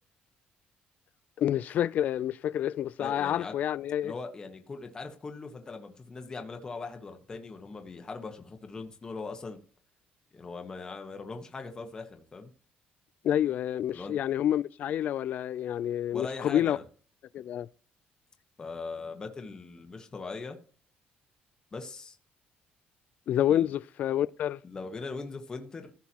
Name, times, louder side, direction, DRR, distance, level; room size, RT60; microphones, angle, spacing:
voice 1, 1.4-4.1 13.2-16.8 17.3-17.7 23.3-24.6, left 11 dB, 50° left, 0.3 m, -28 dB
voice 2, 3.0-3.5 4.0-9.6 10.3-12.5 13.9-14.1 16.1-16.8 18.6-20.6 21.7-22.2 23.5-23.7 24.6-25.9, left 4 dB, 20° left, 1.2 m, -40 dB
15.5 x 6.0 x 2.9 m
cardioid pair, 170°, 4 cm